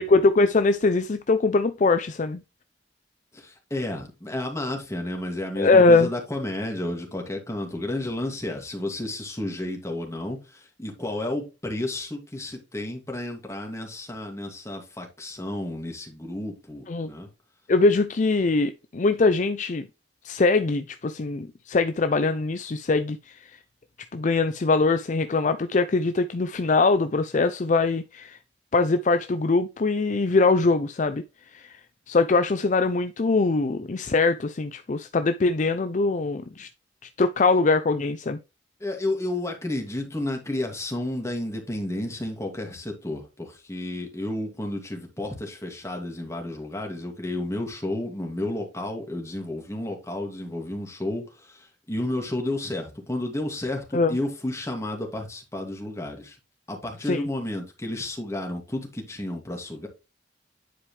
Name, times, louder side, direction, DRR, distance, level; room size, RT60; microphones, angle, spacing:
voice 1, 0.0-2.4 5.6-6.1 16.9-17.1 17.7-19.9 20.2-23.5 24.1-28.4 28.7-31.2 31.5-31.8 32.1-36.7 37.2-38.4 53.9-54.2 57.1-57.3, left 3 dB, 40° left, 0.5 m, -22 dB
voice 2, 3.3-17.3 38.8-56.4 56.7-59.9, left 1 dB, 15° left, 2.4 m, -32 dB
10.0 x 4.8 x 3.3 m
head